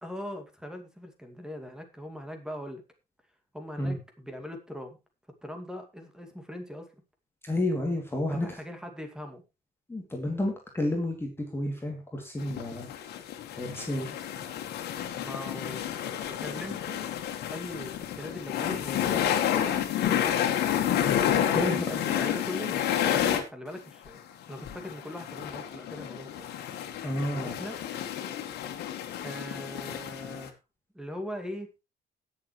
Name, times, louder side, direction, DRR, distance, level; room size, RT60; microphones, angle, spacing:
voice 1, 0.0-2.8 3.5-5.0 5.4-6.9 8.3-9.4 14.0-14.2 15.1-17.0 17.5-20.5 21.3-24.2 24.5-26.5 27.3-27.8 29.2-30.6 30.9-31.7, equal, 5° right, 5 dB, 2.4 m, -41 dB
voice 2, 7.4-8.6 9.9-12.9 13.6-14.1 21.5-22.2 27.0-27.6, left 1 dB, 15° left, 1 dB, 2.8 m, -31 dB
sound 1, 12.4-23.4 23.8-23.9 24.1-24.2 24.5-30.5, left 10 dB, 75° left, 2.1 m, -30 dB
19.5 x 7.3 x 3.2 m, 0.27 s
cardioid pair, 110°, 17 cm